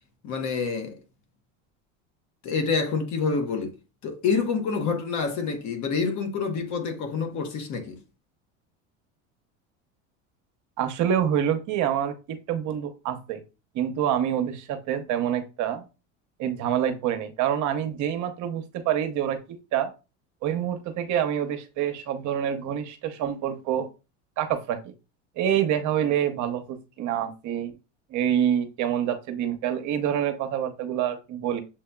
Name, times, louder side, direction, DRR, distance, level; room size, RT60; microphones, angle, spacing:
voice 1, 0.2-1.0 2.4-3.8 4.0-8.0, left 5 dB, 50° left, 1.1 m, -27 dB
voice 2, 10.8-13.4 13.7-15.8 16.4-19.4 19.7-19.9 20.4-23.9 24.4-24.9 25.4-27.7 28.1-31.6, right 10 dB, 50° right, 0.8 m, -26 dB
7.1 x 2.7 x 2.3 m
supercardioid pair, 110°, 38 cm